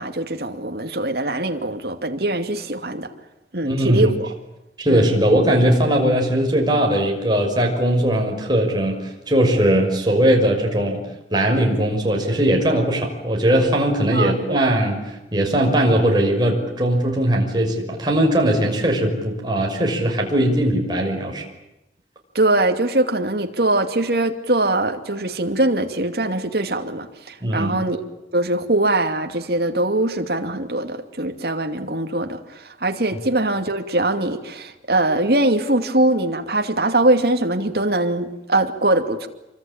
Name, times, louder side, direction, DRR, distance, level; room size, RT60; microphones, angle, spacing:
voice 1, 0.0-3.1 3.5-4.3 4.9-5.1 14.1-14.6 22.3-28.0 28.3-39.3, right 2 dB, 60° right, 5 dB, 2.6 m, -22 dB
voice 2, 3.6-4.1 4.8-11.0 11.3-21.4 27.4-27.8, right 1 dB, 25° right, 0 dB, 6.0 m, -19 dB
27.0 x 24.0 x 9.0 m, 0.93 s
head